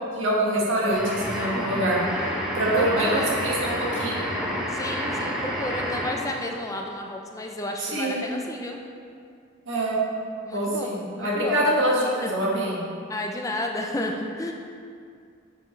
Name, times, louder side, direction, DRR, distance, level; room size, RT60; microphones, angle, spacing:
voice 1, 0.2-2.0 2.5-4.2 7.8-8.3 9.7-10.0 10.5-12.8, right 1 dB, 70° right, -4 dB, 1.9 m, -25 dB
sound 1, 0.9-6.4, equal, 5° right, 1.3 m, -29 dB
voice 2, 2.8-3.3 4.7-8.8 10.4-11.7 12.2-12.3 13.1-14.5, left 1 dB, 15° left, 2 dB, 0.5 m, -32 dB
10.0 x 6.8 x 3.3 m, 2.3 s
head